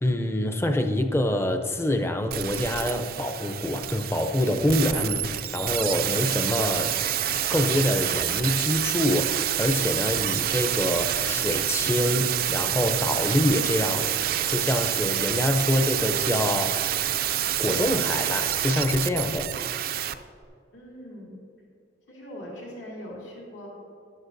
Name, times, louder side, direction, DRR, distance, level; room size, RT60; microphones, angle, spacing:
voice 1, 0.0-7.0 7.5-14.1 14.5-16.8 17.6-19.5, left 1 dB, 15° left, 6 dB, 0.5 m, -26 dB
sound 1, 2.3-20.1 20.4-20.5, right 11 dB, 50° right, 0.4 m, -27 dB
sound 2, 6.9-11.2 13.9-17.9, left 2 dB, 50° left, 1.4 m, -49 dB
voice 2, 20.7-21.4 22.1-23.7, equal, 75° left, -5 dB, 2.6 m, -41 dB
13.0 x 11.0 x 2.6 m, 2.4 s
head